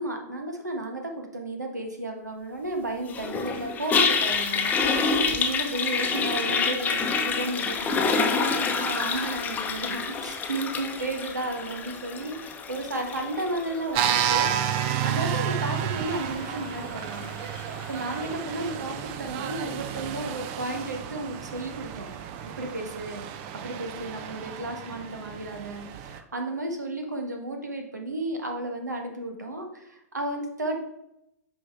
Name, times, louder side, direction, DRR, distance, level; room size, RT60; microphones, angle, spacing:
voice 1, 0.0-17.3 17.9-22.1 22.6-23.2 23.5-30.8, right 2 dB, 85° right, 3 dB, 1.4 m, -33 dB
Toilet flush, 3.1-18.3, left 4 dB, 20° left, 0.8 m, -28 dB
sound 1, 13.9-26.2, right 9 dB, 40° right, 0.6 m, -31 dB
8.5 x 5.3 x 3.6 m, 0.84 s
figure-of-eight pair, 105°, 9 cm